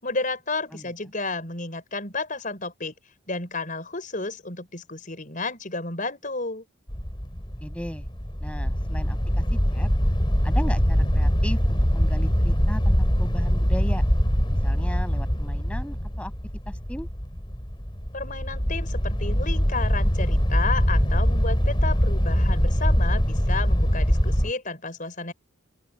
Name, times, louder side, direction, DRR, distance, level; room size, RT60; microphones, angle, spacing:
voice 1, 0.0-2.9 3.3-6.6 18.1-25.3, left 3 dB, 40° left, 5.7 m, -32 dB
sound 1, 6.9-24.5, equal, 25° left, 3.4 m, -23 dB
voice 2, 7.6-8.0 8.4-9.9 10.4-14.0 14.6-16.3 16.7-17.1, equal, 5° left, 7.8 m, -36 dB
open air
head